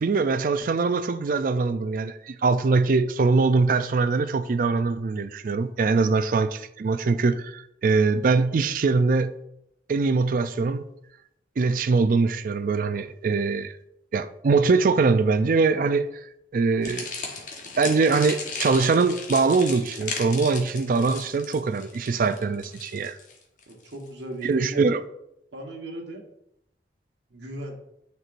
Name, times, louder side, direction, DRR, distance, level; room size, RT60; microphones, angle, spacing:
voice 1, 0.0-9.3 9.9-10.9 11.6-13.7 14.1-16.1 16.5-17.1 17.8-23.2 24.4-25.0, right 4 dB, 50° right, 0.4 m, -22 dB
sound 1, 16.8-24.1, left 4 dB, 45° left, 1.1 m, -36 dB
voice 2, 23.7-24.8 25.5-26.2 27.3-27.7, right 1 dB, 80° right, 1.2 m, -36 dB
9.1 x 4.5 x 2.5 m
head